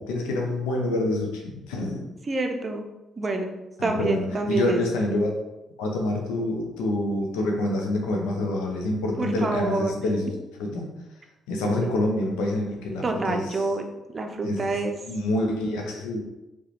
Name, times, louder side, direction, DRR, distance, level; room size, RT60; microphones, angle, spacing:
voice 1, 0.0-1.4 1.7-2.0 3.8-5.3 5.8-10.3 10.6-10.9 11.5-13.4 14.4-14.8 15.1-16.2, left 1 dB, 70° left, 1 dB, 0.6 m, -26 dB
voice 2, 2.3-2.9 3.2-3.5 3.8-4.8 9.2-10.0 11.8-12.0 13.0-13.8 14.1-15.0, right 3 dB, 35° right, 4 dB, 0.5 m, -27 dB
4.7 x 2.3 x 3.1 m, 0.98 s
figure-of-eight pair, 45°, 0 cm